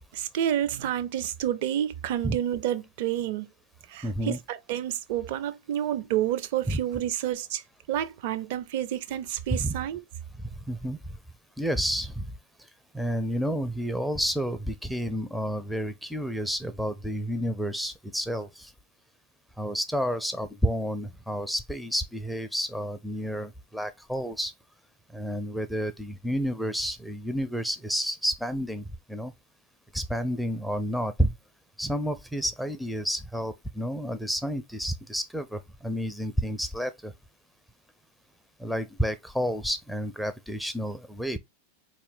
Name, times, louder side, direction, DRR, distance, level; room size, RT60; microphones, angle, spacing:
voice 1, 0.1-3.5 3.9-7.6 7.9-10.0, right 11 dB, 50° right, 0.5 m, -29 dB
voice 2, 4.0-4.4 6.7-6.8 9.5-9.7 10.7-11.0 11.6-12.3 12.9-18.7 19.6-24.5 25.1-29.3 29.9-31.3 31.8-37.1 38.6-41.4, equal, ahead, 0.5 m, -30 dB
4.2 x 3.0 x 3.9 m
figure-of-eight pair, 90°, 0 cm